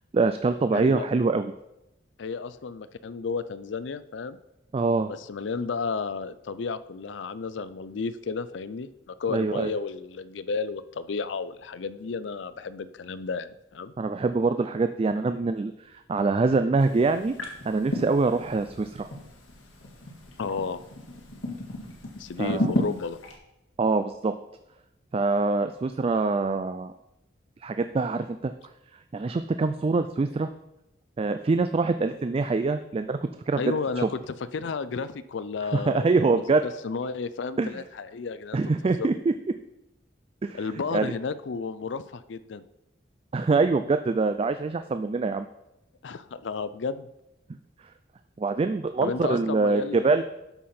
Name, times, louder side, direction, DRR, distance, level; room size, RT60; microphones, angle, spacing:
voice 1, 0.1-1.5 4.7-5.1 9.3-9.7 14.0-17.3 17.7-19.1 22.4-22.7 23.8-24.3 25.1-26.9 27.6-28.5 29.1-30.5 31.2-33.6 34.0-34.1 35.7-36.6 37.6-37.7 38.5-39.1 40.4-40.6 40.9-41.1 43.3-45.5 47.5-47.6 48.4-50.2, right 3 dB, 30° right, 9 dB, 0.3 m, -24 dB
voice 2, 0.7-1.1 2.2-4.4 5.1-13.9 20.4-20.8 22.2-23.2 33.6-39.1 40.5-42.6 46.0-47.1 49.0-50.1, left 4 dB, 65° left, 14 dB, 0.5 m, -33 dB
sound 1, 16.8-23.3, left 1 dB, 80° left, 1.8 m, -34 dB
12.5 x 5.7 x 4.3 m, 0.90 s
head